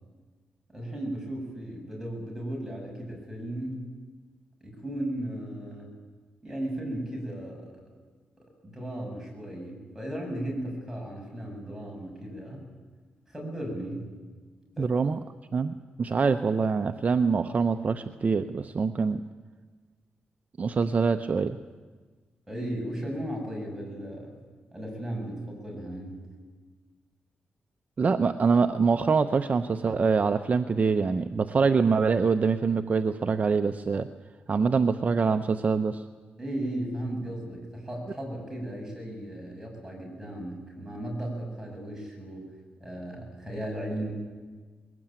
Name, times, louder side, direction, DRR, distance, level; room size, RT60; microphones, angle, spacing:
voice 1, 0.7-3.8 4.6-5.9 6.4-7.7 8.6-12.7 13.3-14.1 14.8-14.9 22.5-24.3 24.7-26.2 36.4-42.5 42.8-44.1, right 1 dB, 10° right, -1 dB, 7.6 m, -36 dB
voice 2, 14.8-15.2 15.5-19.2 20.6-21.6 28.0-34.1 34.5-36.0, right 5 dB, 45° right, 8 dB, 0.7 m, -24 dB
21.5 x 18.5 x 8.9 m, 1.4 s
cardioid pair, 100°, 4 cm